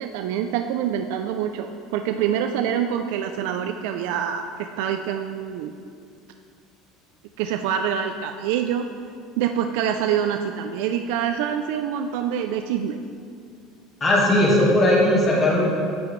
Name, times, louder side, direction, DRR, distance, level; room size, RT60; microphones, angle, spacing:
voice 1, 0.0-5.7 7.4-8.9 9.4-13.0, right 9 dB, 75° right, 6 dB, 0.3 m, -26 dB
voice 2, 14.0-15.6, left 1 dB, 20° left, -4 dB, 1.5 m, -18 dB
10.5 x 6.9 x 3.1 m, 2.4 s
cardioid pair, 170°, 0 cm